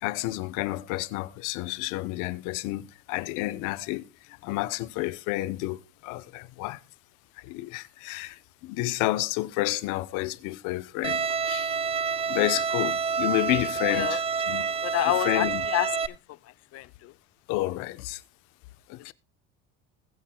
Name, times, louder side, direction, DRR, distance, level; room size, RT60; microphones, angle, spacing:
voice 1, 0.0-6.8 7.4-11.8 12.3-14.6 15.0-15.6 17.5-18.2 18.9-19.1, left 17 dB, 70° left, 1.0 m, -30 dB
Bowed string instrument, 11.0-16.1, right 6 dB, 20° right, 0.6 m, -28 dB
voice 2, 14.8-16.2 16.7-17.1, left 18 dB, 50° left, 0.6 m, -28 dB
20.5 x 7.5 x 2.3 m
cardioid pair, 125°, 32 cm